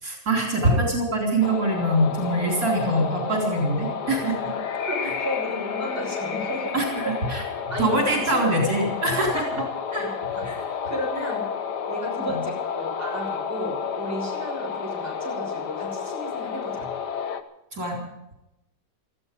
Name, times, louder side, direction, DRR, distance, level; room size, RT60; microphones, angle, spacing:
voice 1, 0.0-4.5 6.7-7.4 7.8-9.6 9.9-10.1 10.4-10.6 12.3-12.4 17.7-18.0, right 1 dB, 60° right, 0 dB, 4.7 m, -24 dB
sound 1, 1.4-17.4, left 6 dB, 90° left, 1.8 m, -31 dB
voice 2, 4.8-6.8 7.0-7.1 7.7-8.9 9.6-9.7 10.0-10.5 10.9-11.5 11.9-16.9, equal, 10° right, -2 dB, 6.2 m, -33 dB
18.5 x 14.5 x 5.3 m, 0.88 s
omnidirectional pair, 1.7 m